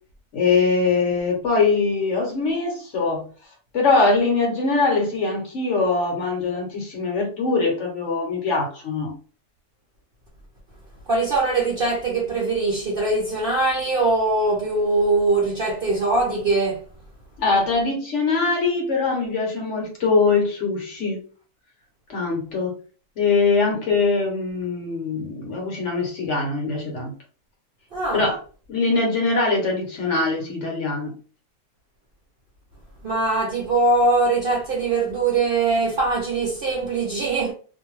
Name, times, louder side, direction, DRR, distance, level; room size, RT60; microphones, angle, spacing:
voice 1, 0.3-3.2 3.7-9.1 17.4-21.2 22.1-22.7 23.2-27.1 28.1-28.4 28.7-31.1, left 4 dB, 55° left, 1.0 m, -22 dB
voice 2, 11.1-16.8 27.9-28.2 33.0-37.5, right 3 dB, 55° right, 0.6 m, -22 dB
2.6 x 2.2 x 3.0 m
omnidirectional pair, 1.6 m